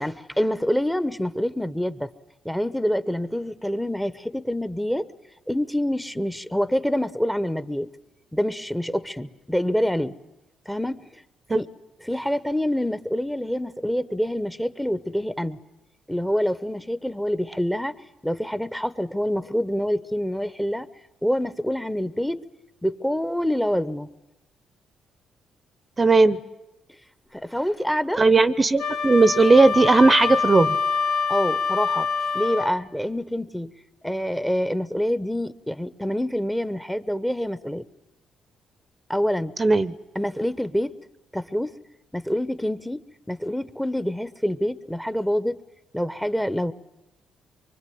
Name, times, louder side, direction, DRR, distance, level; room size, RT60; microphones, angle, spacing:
voice 1, 0.0-2.1 2.4-5.1 5.5-7.9 8.3-10.2 10.7-11.2 11.5-11.7 12.0-15.6 16.1-17.9 18.2-20.9 21.2-22.4 22.8-24.1 27.3-28.2 31.3-32.1 32.3-33.7 34.0-37.8 39.1-39.5 40.1-40.9 41.3-41.7 42.1-43.0 43.3-45.6 45.9-46.7, equal, 5° left, 13 dB, 1.0 m, -26 dB
voice 2, 26.0-26.4 28.2-30.7 39.6-39.9, right 3 dB, 25° right, 15 dB, 0.9 m, -17 dB
Wind instrument woodwind instrument, 28.8-32.8, left 5 dB, 70° left, 2.5 m, -25 dB
24.5 x 24.0 x 9.4 m, 0.98 s
cardioid pair, 90°, 0 cm